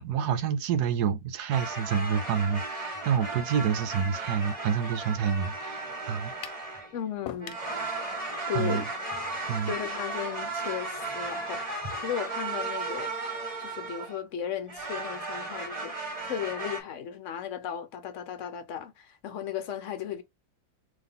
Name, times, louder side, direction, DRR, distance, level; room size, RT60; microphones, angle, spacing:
voice 1, 0.0-6.3 8.5-8.9 9.5-9.7, right 7 dB, 70° right, 1.0 m, -28 dB
sound 1, 1.5-7.0 7.4-14.2 14.7-16.8, right 3 dB, 20° right, 1.6 m, -35 dB
sound 2, 6.4-6.7 7.3-7.7, left 11 dB, 70° left, 1.3 m, -40 dB
voice 2, 6.9-7.6 8.5-8.8 9.7-13.3 13.6-16.0 16.2-20.2, left 9 dB, 50° left, 1.0 m, -35 dB
3.7 x 3.2 x 3.7 m
omnidirectional pair, 2.1 m